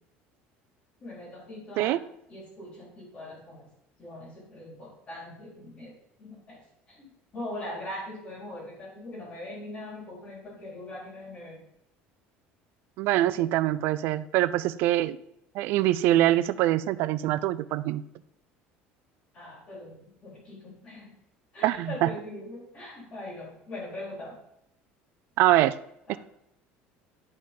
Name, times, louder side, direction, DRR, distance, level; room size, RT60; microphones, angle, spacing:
voice 1, 1.0-2.0 2.3-3.7 4.0-5.9 6.2-6.6 6.9-11.6 13.3-13.4 19.3-21.1 21.5-24.4 26.1-26.2, left 1 dB, 30° left, -3 dB, 3.9 m, -41 dB
voice 2, 13.0-15.2 15.6-18.0 21.6-22.1 25.4-25.7 26.1-26.2, right 14 dB, 55° right, 15 dB, 0.4 m, -24 dB
10.5 x 5.5 x 5.3 m, 0.78 s
cardioid pair, 165°, 4 cm